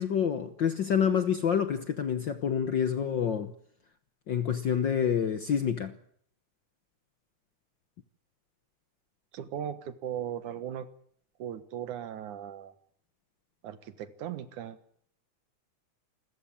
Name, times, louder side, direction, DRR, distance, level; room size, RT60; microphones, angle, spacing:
voice 1, 0.0-3.5 4.3-5.9, left 8 dB, 60° left, 1.2 m, -27 dB
voice 2, 9.3-10.9 11.4-12.7 13.6-14.8, right 9 dB, 85° right, 2.9 m, -38 dB
28.0 x 14.5 x 8.8 m
omnidirectional pair, 3.4 m